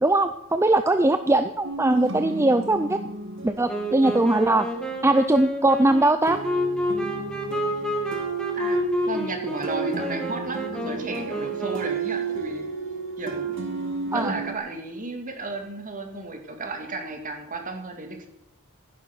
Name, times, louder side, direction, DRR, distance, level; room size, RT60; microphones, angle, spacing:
voice 1, 0.0-3.0 3.4-4.7 5.0-6.4 14.1-14.3, right 2 dB, 10° right, 9 dB, 0.5 m, -20 dB
sound 1, 1.6-5.7 6.2-14.5, right 4 dB, 60° right, 2.2 m, -33 dB
Wind instrument woodwind instrument, 3.7-12.1, equal, 5° left, 2.1 m, -29 dB
voice 2, 8.5-12.7 13.2-13.6 14.1-18.3, right 2 dB, 35° right, 4 dB, 2.3 m, -33 dB
16.0 x 10.5 x 6.0 m, 0.83 s
head